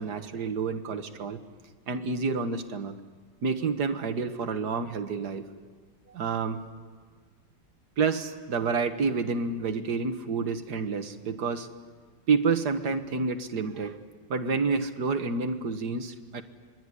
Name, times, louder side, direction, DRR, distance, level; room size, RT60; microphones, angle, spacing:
voice 1, 0.0-1.4 1.9-2.9 3.4-5.4 6.1-6.6 8.0-11.7 12.3-14.0 14.3-16.4, right 4 dB, 60° right, 7 dB, 1.9 m, -29 dB
26.0 x 22.0 x 9.8 m, 1.5 s
omnidirectional pair, 2.0 m